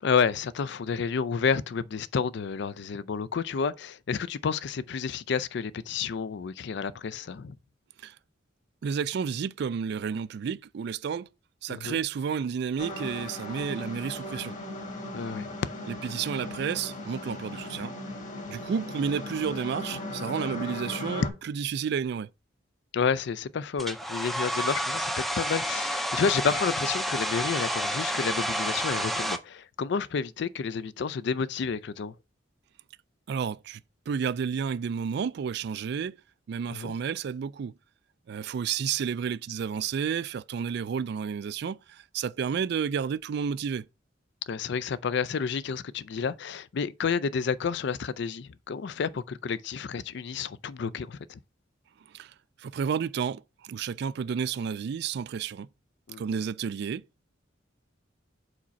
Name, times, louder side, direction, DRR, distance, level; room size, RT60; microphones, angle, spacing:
voice 1, 0.0-7.5 11.7-12.0 15.1-15.5 22.9-25.1 25.4-32.1 36.7-36.9 44.5-51.4 56.1-56.2, left 6 dB, 60° left, 0.4 m, -30 dB
voice 2, 8.8-11.3 11.6-14.6 15.9-18.0 18.5-22.3 33.3-33.8 34.1-36.2 36.5-37.7 38.3-43.9 52.1-55.7 56.2-57.0, right 7 dB, 60° right, 0.3 m, -31 dB
sound 1, 12.8-21.3, left 1 dB, 40° left, 1.6 m, -37 dB
Domestic sounds home sounds, 23.8-29.4, equal, ahead, 0.5 m, -30 dB
4.9 x 4.1 x 5.6 m
head